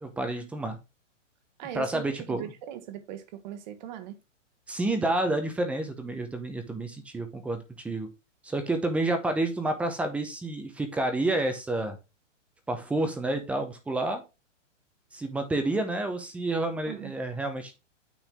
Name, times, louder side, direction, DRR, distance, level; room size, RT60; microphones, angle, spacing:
voice 1, 0.0-0.8 1.7-2.5 4.7-8.1 8.4-12.0 12.7-14.2 15.1-17.7, right 2 dB, 5° right, 0.7 m, -29 dB
voice 2, 1.6-4.2 16.9-17.1, right 10 dB, 35° right, 1.3 m, -39 dB
9.2 x 4.0 x 3.5 m
hypercardioid pair, 150°, 38 cm